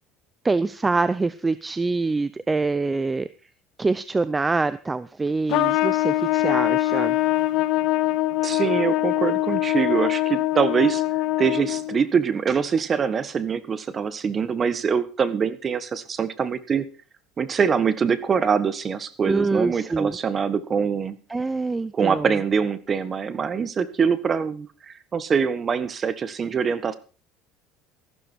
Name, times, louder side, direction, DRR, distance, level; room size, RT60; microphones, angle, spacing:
voice 1, 0.4-3.3 3.8-7.2 19.3-20.2 21.3-22.3, right 3 dB, 15° right, 16 dB, 0.6 m, -25 dB
Trumpet, 5.5-12.0, left 16 dB, 70° left, 0.7 m, -23 dB
voice 2, 8.4-11.0 11.4-16.8 17.4-21.2 21.9-26.9, right 6 dB, 30° right, 15 dB, 1.5 m, -24 dB
14.5 x 12.5 x 4.6 m, 0.35 s
supercardioid pair, 115°, 0 cm